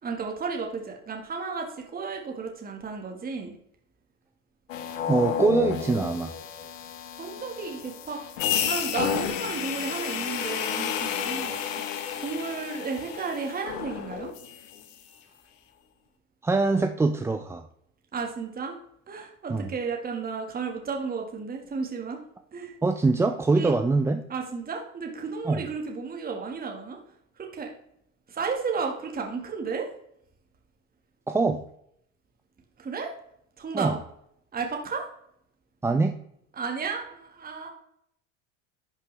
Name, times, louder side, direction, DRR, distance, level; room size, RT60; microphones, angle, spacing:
voice 1, 0.0-3.5 7.2-11.6 11.9-14.3 18.1-18.7 19.1-22.2 22.5-22.7 23.5-23.7 24.3-27.0 27.4-27.7 28.3-29.9 32.8-33.1 33.6-34.0 34.5-35.0 36.6-37.7, right 5 dB, 25° right, 2 dB, 1.6 m, -33 dB
sound 1, 4.7-14.8, left 8 dB, 90° left, 1.2 m, -31 dB
voice 2, 5.1-6.3 16.4-17.6 19.5-19.7 22.8-24.2 25.5-25.6 31.3-31.6 33.7-33.9 35.8-36.1, right 3 dB, 10° right, 7 dB, 0.3 m, -23 dB
11.5 x 5.4 x 3.3 m, 0.73 s
supercardioid pair, 105°, 38 cm